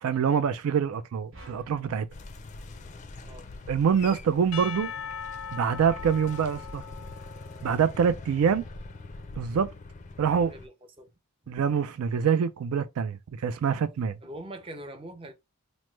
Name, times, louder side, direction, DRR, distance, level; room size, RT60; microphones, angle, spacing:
voice 1, 0.0-2.1 3.7-4.9 5.5-6.8 7.6-8.6 9.4-9.7 10.2-10.5 11.5-14.2, right 7 dB, 85° right, 0.3 m, -25 dB
sound 1, 1.3-3.7, right 1 dB, 70° right, 0.9 m, -53 dB
sound 2, 2.1-10.7, left 3 dB, 35° left, 0.4 m, -43 dB
Percussion / Church bell, 4.5-8.7, left 7 dB, 90° left, 0.5 m, -40 dB
voice 2, 10.5-11.1 14.2-15.3, right 1 dB, 25° right, 0.5 m, -42 dB
3.0 x 2.1 x 3.1 m
head